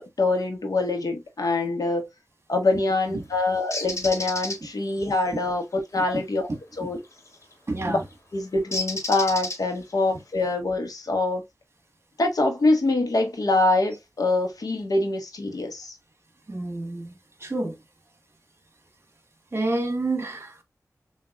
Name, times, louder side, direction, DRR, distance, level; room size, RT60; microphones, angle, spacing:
voice 1, 0.0-2.1 2.5-6.5 6.8-7.0 7.9-8.0 8.3-11.4 12.2-15.9, left 2 dB, 85° left, 1.4 m, -24 dB
Bird, 3.7-4.6 7.2-7.4 8.7-9.9, left 2 dB, 50° left, 1.8 m, -31 dB
voice 2, 7.7-8.0 16.5-17.1 17.4-17.8 19.5-20.6, right 2 dB, 45° right, 1.5 m, -28 dB
6.5 x 2.8 x 2.3 m
wide cardioid pair, 75°, 6 cm